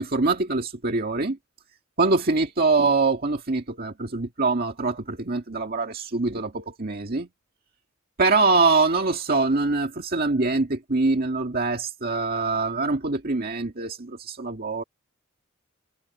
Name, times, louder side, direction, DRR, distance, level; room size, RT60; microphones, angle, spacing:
voice 1, 0.0-1.4 2.0-7.3 8.2-14.8, right 3 dB, 50° right, 1.9 m, -24 dB
head